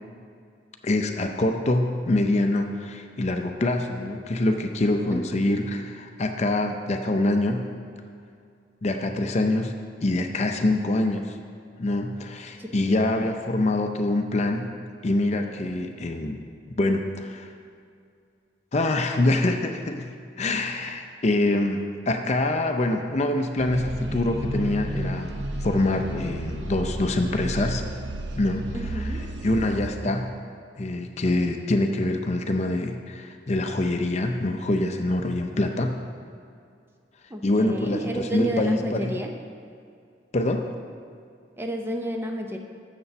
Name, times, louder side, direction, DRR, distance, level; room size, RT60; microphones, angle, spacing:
voice 1, 0.8-7.6 8.8-9.7 10.0-11.3 11.8-14.7 15.0-16.4 16.8-17.5 18.7-20.1 20.4-25.3 25.6-27.8 28.4-28.7 29.0-29.1 29.4-30.3 30.8-35.9 37.4-39.2 40.3-40.6, left 2 dB, 40° left, 5 dB, 0.5 m, -25 dB
voice 2, 10.7-11.0 12.6-12.7 28.7-29.3 37.3-39.3 41.6-42.6, right 1 dB, 15° right, 3 dB, 0.6 m, -31 dB
sound 1, 23.6-29.9, right 1 dB, 70° right, 0.7 m, -32 dB
6.9 x 6.8 x 6.8 m, 2.3 s
head